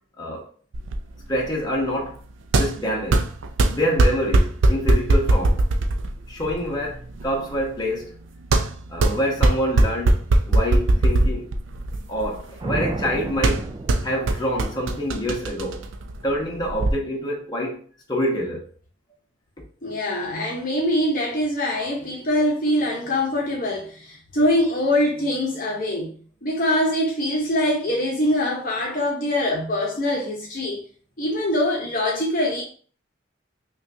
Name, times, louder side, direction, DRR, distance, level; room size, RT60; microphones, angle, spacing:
sound 1, 0.7-16.9, right 2 dB, 90° right, 0.4 m, -22 dB
voice 1, 1.3-2.2 2.5-3.2 3.7-5.6 6.3-8.2 8.9-11.5 12.1-13.7 14.0-15.8 16.2-17.8 18.1-18.6, equal, 20° left, 1.0 m, -26 dB
sound 2, 12.6-14.9, right 2 dB, 25° right, 0.3 m, -31 dB
voice 2, 19.8-26.1 26.4-30.8 31.2-32.6, left 1 dB, 45° left, 0.8 m, -23 dB
5.5 x 2.3 x 2.7 m
head